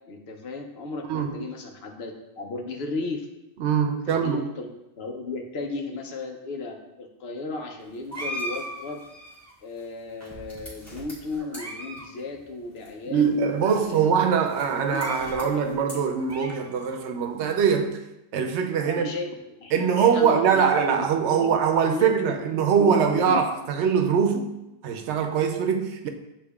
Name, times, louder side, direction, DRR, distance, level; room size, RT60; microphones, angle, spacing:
voice 1, 0.1-3.3 4.1-4.7 5.0-9.0 9.6-14.1 14.6-15.6 18.9-19.3 19.6-21.5 21.8-23.4, left 3 dB, 70° left, 0.9 m, -35 dB
voice 2, 1.1-1.4 3.6-4.4 13.1-18.0 18.3-19.1 19.7-24.6 24.8-26.1, right 7 dB, 90° right, 0.9 m, -23 dB
sound 1, 7.8-12.4 12.7-16.7, equal, 25° left, 1.7 m, -48 dB
sound 2, 8.1-9.5 10.2-10.9 11.4-12.1 12.3-12.4 13.1-13.2 13.6-13.7 14.7-15.5 16.0-17.0, right 1 dB, 25° right, 0.3 m, -37 dB
8.1 x 2.7 x 2.3 m
omnidirectional pair, 1.1 m